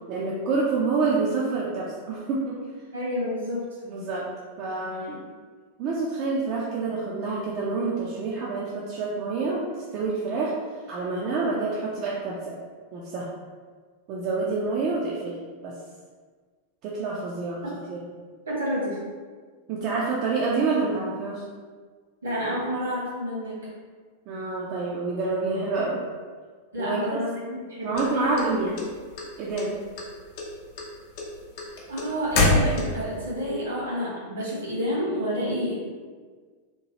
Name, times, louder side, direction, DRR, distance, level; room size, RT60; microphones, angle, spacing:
voice 1, 0.1-2.6 3.9-4.3 4.6-5.2 5.8-9.6 9.9-10.5 10.9-12.6 12.9-13.3 14.1-15.3 15.6-15.7 16.8-18.0 19.7-21.4 24.3-26.0 26.8-27.2 27.8-28.8 29.4-29.8, right 3 dB, 40° right, -5 dB, 0.4 m, -27 dB
voice 2, 2.9-3.7 18.4-19.0 22.2-23.7 26.7-28.5 31.9-35.8, equal, 70° right, -6 dB, 1.1 m, -29 dB
sound 1, 27.9-29.2 29.6-30.1 30.4-33.2, left 2 dB, 50° left, 0.6 m, -24 dB
2.9 x 2.2 x 2.9 m, 1.5 s
figure-of-eight pair, 90°, 0 cm